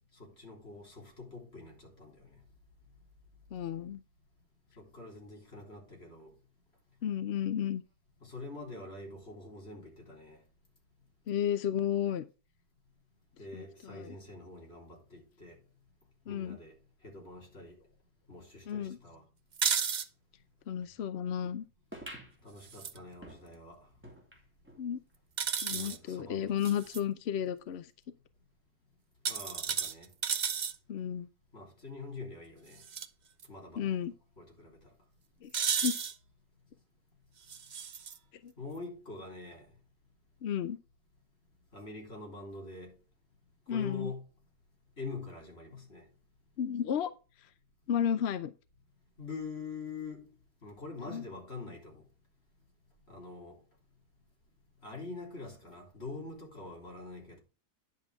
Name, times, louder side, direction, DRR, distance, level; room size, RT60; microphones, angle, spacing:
voice 1, 0.1-2.4 4.8-6.3 8.2-10.4 13.4-15.6 16.3-16.8 17.0-17.8 18.3-19.2 22.4-23.9 25.7-26.7 29.3-30.1 31.5-32.8 33.5-34.0 34.4-34.9 38.6-39.7 41.7-43.0 43.7-44.2 45.0-46.1 49.2-50.3 50.6-52.0 53.1-53.6 54.8-57.4, left 3 dB, 40° left, 3.8 m, -45 dB
voice 2, 3.5-4.0 7.0-7.8 11.3-12.2 13.5-14.2 16.3-16.6 18.7-19.0 20.7-21.7 24.8-25.0 25.6-27.9 30.9-31.3 33.8-34.1 35.4-35.5 35.8-36.0 38.4-38.5 40.4-40.8 43.7-44.1 46.6-47.1 47.9-48.5 51.1-51.2, left 9 dB, 65° left, 0.6 m, -33 dB
sound 1, 19.5-20.1 22.6-23.0 25.4-26.0 26.6-27.0 29.2-30.7 32.8-33.1 33.4-33.5 35.5-36.1 37.5-38.2, right 7 dB, 85° right, 0.4 m, -33 dB
sound 2, 21.9-24.9 25.3-25.4 25.6-25.7 26.5-26.6, right 1 dB, 5° right, 2.9 m, -50 dB
10.5 x 7.2 x 3.4 m
omnidirectional pair, 1.8 m